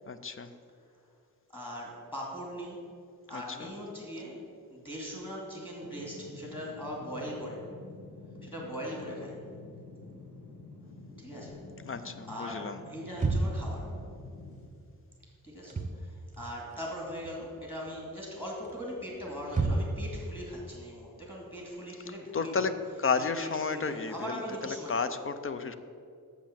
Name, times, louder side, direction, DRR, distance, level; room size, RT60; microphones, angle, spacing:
voice 1, 0.1-0.5 3.3-3.7 11.9-12.8 22.3-22.7 23.0-25.7, left 4 dB, 35° left, 10 dB, 0.5 m, -32 dB
voice 2, 1.5-2.9 3.3-4.4 4.7-7.7 8.4-9.4 11.2-11.6 11.9-13.9 15.4-22.7 23.2-25.1, equal, 15° left, -3 dB, 2.3 m, -40 dB
sound 1, 5.8-14.6, left 3 dB, 80° left, 2.0 m, -49 dB
sound 2, 13.1-13.8 15.5-16.0 16.3-17.3 17.6-18.0 18.6-20.1, right 3 dB, 20° right, 0.9 m, -30 dB
7.4 x 7.1 x 7.3 m, 2.4 s
wide cardioid pair, 165°, 36 cm